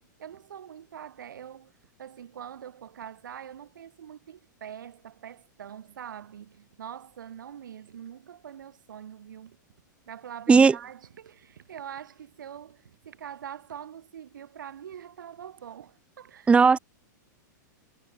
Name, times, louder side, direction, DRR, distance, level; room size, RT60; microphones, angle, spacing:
voice 1, 0.0-1.7 2.0-9.6 10.1-16.6, right 9 dB, 85° right, 7.6 m, -44 dB
voice 2, 16.5-16.8, right 5 dB, 10° right, 0.6 m, -16 dB
hypercardioid pair, 125°, 10 cm